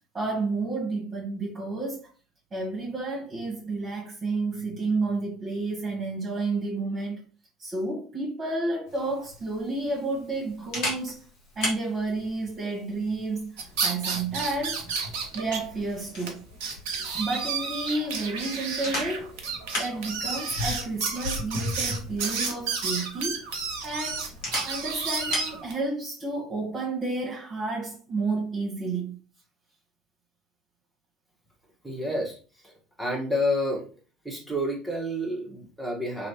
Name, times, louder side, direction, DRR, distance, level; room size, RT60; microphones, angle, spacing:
voice 1, 0.1-2.1 2.5-7.2 7.6-11.2 11.5-13.5 13.8-14.9 15.3-16.4 17.1-19.3 19.7-23.4 23.8-24.3 24.6-29.2, right 3 dB, 20° right, 1.4 m, -31 dB
Camera, 8.9-25.6, left 1 dB, 55° left, 1.5 m, -38 dB
sound 1, 13.6-15.6 15.9-16.0 16.3-16.4 16.6-25.7, right 5 dB, 60° right, 0.6 m, -31 dB
voice 2, 31.8-32.4 32.6-33.8 34.2-36.3, left 1 dB, 5° left, 1.3 m, -29 dB
3.0 x 2.9 x 2.8 m
figure-of-eight pair, 65°, 0 cm